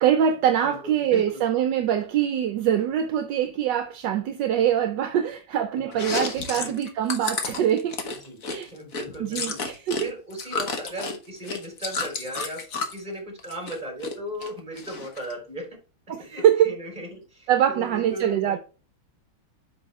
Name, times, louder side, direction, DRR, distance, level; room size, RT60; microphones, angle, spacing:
voice 1, 0.0-8.0 8.5-8.7 9.2-10.1 16.1-16.7 17.5-18.6, right 9 dB, 75° right, 1.2 m, -23 dB
voice 2, 0.6-1.4 5.8-6.2 6.5-6.7 8.1-8.4 8.7-9.6 10.0-12.6 12.9-15.8 16.2-18.6, equal, 20° right, 3.6 m, -37 dB
Chewing mastication, 5.9-10.0 10.3-13.0 13.4-14.1 14.4-15.3, left 4 dB, 50° left, 1.5 m, -31 dB
8.2 x 5.6 x 3.2 m
omnidirectional pair, 2.1 m